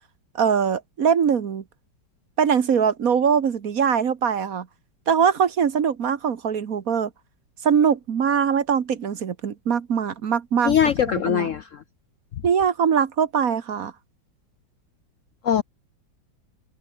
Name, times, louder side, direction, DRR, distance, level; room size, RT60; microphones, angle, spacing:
voice 1, 0.3-1.6 2.4-4.7 5.1-7.1 7.6-11.5 12.4-13.9, right 7 dB, 50° right, 1.5 m, -22 dB
voice 2, 10.6-11.6 15.4-15.6, left 9 dB, 65° left, 0.7 m, -21 dB
omnidirectional pair, 2.0 m